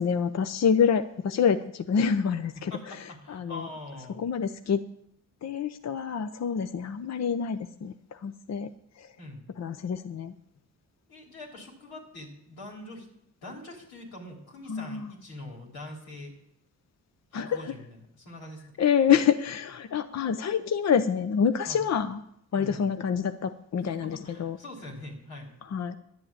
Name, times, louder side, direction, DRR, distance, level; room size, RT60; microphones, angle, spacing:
voice 1, 0.0-3.7 4.1-4.8 5.4-8.7 9.0-9.1 9.6-10.3 14.7-15.1 17.3-17.7 18.8-22.2 22.5-24.6 25.6-26.0, left 7 dB, 45° left, 10 dB, 0.7 m, -27 dB
voice 2, 2.7-4.2 9.2-9.4 11.1-13.1 13.4-16.3 17.3-18.8 21.7-21.8 22.6-22.9 23.9-25.5, left 1 dB, 85° left, -1 dB, 3.6 m, -43 dB
11.0 x 7.7 x 8.6 m, 0.74 s
supercardioid pair, 60°, 36 cm